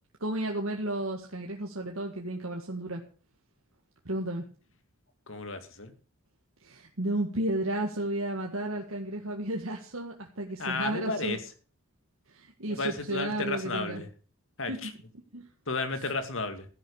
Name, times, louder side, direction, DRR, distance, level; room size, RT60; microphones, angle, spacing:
voice 1, 0.2-3.0 4.1-4.4 6.6-11.4 12.3-14.0 14.7-14.8 15.3-15.5, right 1 dB, 70° right, 1 dB, 2.0 m, -33 dB
voice 2, 5.3-5.9 10.6-11.4 12.7-14.1 14.6-14.9 15.7-16.7, left 3 dB, 65° left, 8 dB, 2.3 m, -33 dB
14.0 x 10.5 x 6.5 m, 0.39 s
head